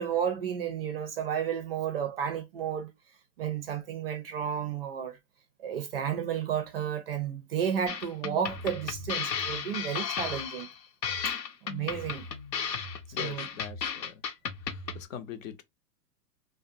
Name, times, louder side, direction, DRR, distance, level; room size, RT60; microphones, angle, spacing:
voice 1, 0.0-2.9 3.4-5.2 5.6-10.7 11.6-12.3 13.2-13.5, right 8 dB, 40° right, 0.4 m, -32 dB
sound 1, 7.9-15.0, left 6 dB, 80° left, 0.9 m, -34 dB
voice 2, 13.1-14.2 14.6-15.6, left 9 dB, 55° left, 0.7 m, -42 dB
2.6 x 2.1 x 2.5 m
hypercardioid pair, 120°, 49 cm